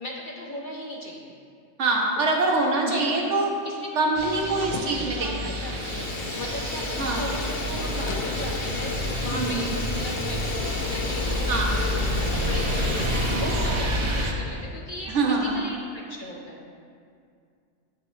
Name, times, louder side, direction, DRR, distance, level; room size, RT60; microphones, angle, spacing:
voice 1, 0.0-1.3 1.8-1.9 2.2-3.3 3.6-3.8 4.3-4.4 4.8-16.7, left 1 dB, 50° left, -1 dB, 0.7 m, -37 dB
voice 2, 1.8-3.5 3.9-5.5 7.0-7.3 9.3-9.8 11.5-11.7 15.1-15.5, right 3 dB, 65° right, 0 dB, 1.2 m, -24 dB
sound 1, 4.1-14.3, equal, 40° right, 0.4 m, -29 dB
Fire, 4.6-5.1 5.4-14.2, left 5 dB, 80° left, 1.0 m, -34 dB
8.0 x 6.8 x 3.2 m, 2.3 s
omnidirectional pair, 1.3 m